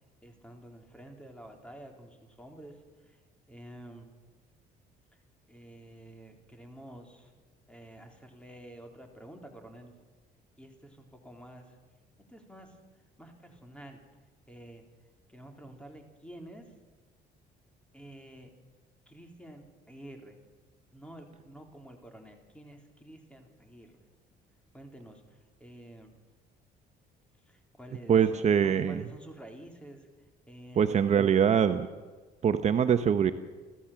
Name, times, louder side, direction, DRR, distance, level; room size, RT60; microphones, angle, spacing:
voice 1, 0.2-3.2 3.5-4.1 5.1-5.2 5.5-7.3 7.7-10.1 10.6-11.8 12.3-12.8 13.2-14.0 14.5-14.8 15.3-16.7 17.9-18.5 19.1-20.4 20.9-23.9 24.7-26.1 27.4-28.2 28.6-31.3, right 1 dB, 5° left, 3 dB, 3.8 m, -49 dB
voice 2, 28.1-29.0 30.8-31.9 32.4-33.3, right 8 dB, 40° right, 9 dB, 1.0 m, -23 dB
29.5 x 13.5 x 7.5 m, 1.3 s
cardioid pair, 110°, 17 cm